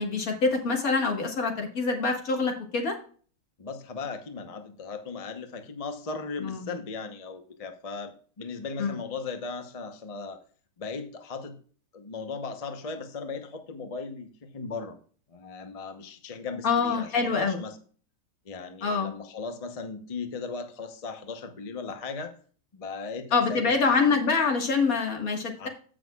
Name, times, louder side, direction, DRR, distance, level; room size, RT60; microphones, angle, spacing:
voice 1, 0.0-3.0 6.4-6.7 8.8-8.9 16.6-17.6 18.8-19.1 23.3-25.7, left 4 dB, 55° left, 3 dB, 2.0 m, -25 dB
voice 2, 3.6-10.4 10.8-11.6 11.9-15.0 15.3-17.8 18.4-22.3 22.7-24.2 25.6-25.7, left 4 dB, 30° left, 7 dB, 0.7 m, -37 dB
14.5 x 6.2 x 2.3 m, 0.43 s
omnidirectional pair, 1.9 m